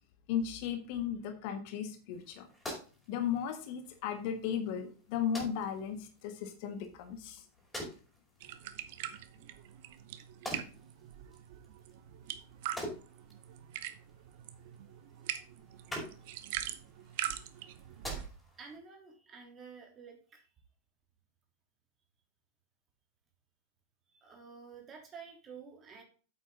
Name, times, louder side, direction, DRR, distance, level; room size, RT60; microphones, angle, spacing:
voice 1, 0.3-2.5 3.1-7.4, left 8 dB, 45° left, 7 dB, 1.5 m, -36 dB
sound 1, 2.1-18.8, equal, 5° left, 5.2 m, -48 dB
sound 2, 8.4-18.3, right 12 dB, 50° right, 0.9 m, -43 dB
voice 2, 18.6-20.5 24.1-26.0, right 5 dB, 25° right, 2 dB, 3.5 m, -50 dB
9.0 x 8.2 x 3.9 m, 0.38 s
figure-of-eight pair, 90°, 0 cm